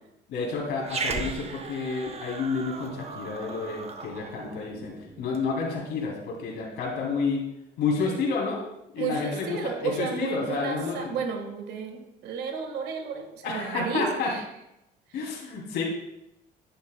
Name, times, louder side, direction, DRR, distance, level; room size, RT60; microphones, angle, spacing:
voice 1, 0.3-4.9 5.2-7.4 7.8-8.7 8.9-11.2 13.4-14.3 15.1-15.8, left 4 dB, 75° left, -3 dB, 2.7 m, -30 dB
Growling, 0.8-5.5, right 4 dB, 40° right, 0.9 m, -37 dB
voice 2, 9.0-14.4, right 5 dB, 80° right, 5 dB, 1.5 m, -32 dB
10.0 x 9.9 x 2.2 m, 0.88 s
cardioid pair, 110°, 17 cm